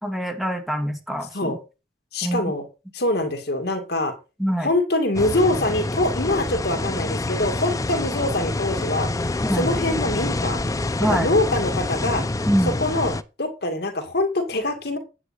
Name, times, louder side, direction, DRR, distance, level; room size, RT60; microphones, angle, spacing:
voice 1, 0.0-1.6 2.2-2.5 4.4-4.7 9.4-9.7 11.0-11.3 12.5-12.7, equal, ahead, 5 dB, 1.9 m, -24 dB
voice 2, 2.1-2.7 2.9-4.1 4.6-10.6 11.1-12.2 12.8-15.0, left 2 dB, 65° left, 6 dB, 2.1 m, -24 dB
sound 1, 5.2-13.2, left 2 dB, 20° left, 0.5 m, -26 dB
9.7 x 8.6 x 4.3 m, 0.30 s
head